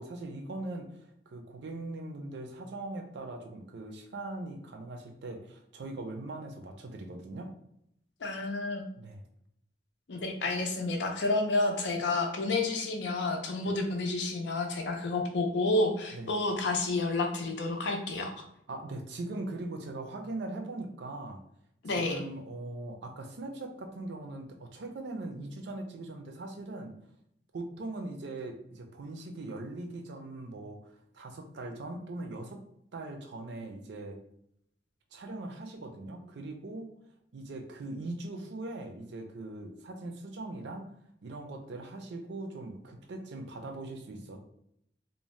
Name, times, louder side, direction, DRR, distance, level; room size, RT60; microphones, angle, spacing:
voice 1, 0.0-7.5 9.0-9.2 13.6-13.8 16.1-16.3 18.7-21.4 21.8-27.0 27.5-32.6 32.9-34.2 35.1-36.9 37.3-40.9 41.2-44.4, right 2 dB, 70° right, 4 dB, 0.4 m, -40 dB
voice 2, 8.2-8.8 10.1-18.4 21.8-22.2, left 2 dB, 75° left, 3 dB, 0.5 m, -30 dB
2.6 x 2.0 x 3.1 m, 0.73 s
head